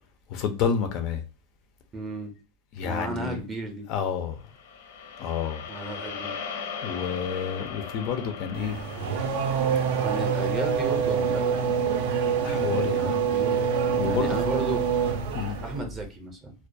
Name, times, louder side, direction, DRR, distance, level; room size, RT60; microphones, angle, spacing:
voice 1, 0.3-1.2 2.7-3.4 3.9-4.4 5.2-5.6 6.8-8.8 12.4-13.2 14.0-14.4 15.3-15.6, left 7 dB, 40° left, 0.3 m, -29 dB
voice 2, 1.9-2.3 2.8-3.9 5.7-6.4 10.0-12.0 12.9-13.7 14.0-14.9 15.6-16.5, right 2 dB, 15° right, 0.5 m, -34 dB
sound 1, 4.4-12.7, left 6 dB, 85° left, 0.6 m, -40 dB
Race car auto racing / Accelerating revving vroom, 8.5-15.8, right 6 dB, 65° right, 0.4 m, -26 dB
2.2 x 2.2 x 2.5 m
supercardioid pair, 170°, 0 cm